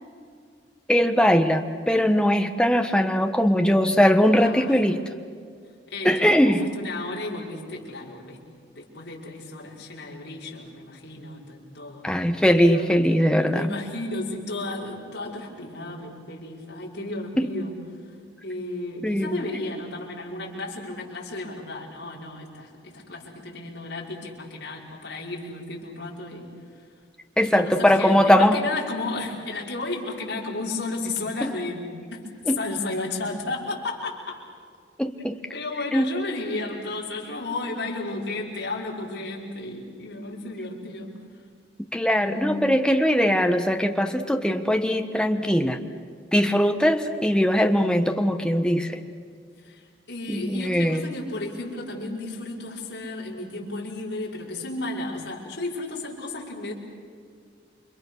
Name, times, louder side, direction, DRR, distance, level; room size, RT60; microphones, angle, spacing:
voice 1, 0.9-5.0 6.0-6.6 12.0-13.7 17.4-17.5 19.0-19.4 27.4-28.6 31.4-31.5 32.5-32.6 35.0-35.4 35.9-36.1 41.9-45.8 46.3-49.0 50.3-51.1, equal, 5° left, 6 dB, 1.2 m, -21 dB
voice 2, 4.3-4.7 5.9-8.4 8.8-12.0 12.6-17.7 18.4-26.5 27.4-32.3 32.6-34.4 35.5-41.2 42.2-42.8 49.6-56.7, left 2 dB, 65° left, -3 dB, 5.7 m, -33 dB
29.5 x 25.5 x 6.5 m, 2.2 s
head